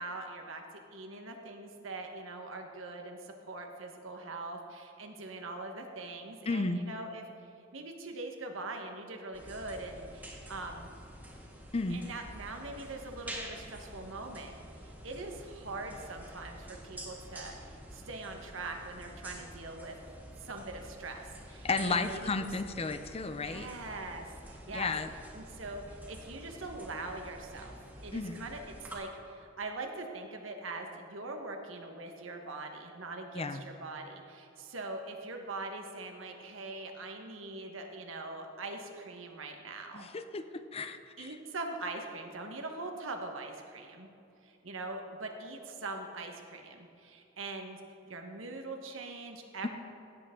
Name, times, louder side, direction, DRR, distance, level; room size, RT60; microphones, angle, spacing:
voice 1, 0.0-7.2 7.7-10.9 11.9-14.5 14.8-19.9 20.4-22.3 23.4-24.9 25.3-27.8 28.0-40.1 41.2-44.1 44.4-49.7, right 2 dB, 85° right, 4 dB, 1.3 m, -42 dB
voice 2, 6.5-6.8 11.7-12.0 21.6-23.7 24.7-25.1 28.1-28.4 33.3-33.6 39.9-41.3, left 3 dB, 30° left, 10 dB, 0.5 m, -33 dB
sound 1, 9.3-29.0, right 1 dB, 10° right, 1.7 m, -48 dB
16.5 x 8.2 x 3.8 m, 2.8 s
head